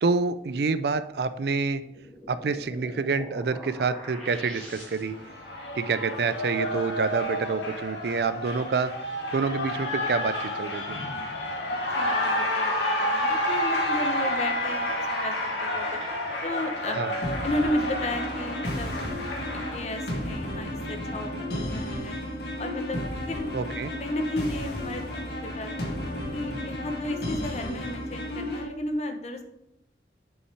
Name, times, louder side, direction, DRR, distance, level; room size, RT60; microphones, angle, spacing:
voice 1, 0.0-1.8 2.3-5.2 5.8-8.9 9.3-11.0 16.9-17.1 23.5-23.9, right 4 dB, 65° right, 13 dB, 0.4 m, -27 dB
sound 1, 1.9-5.4, equal, 5° left, 2.2 m, -44 dB
Cheering, 4.6-19.7, left 1 dB, 80° left, 1.9 m, -30 dB
voice 2, 11.9-15.3 15.6-16.0 16.4-17.2 17.4-19.2 19.5-22.2 22.6-25.9 26.3-29.4, left 1 dB, 40° left, 6 dB, 0.8 m, -33 dB
sound 2, 17.2-28.6, left 1 dB, 65° left, 1.7 m, -33 dB
6.6 x 5.4 x 4.5 m, 0.82 s
head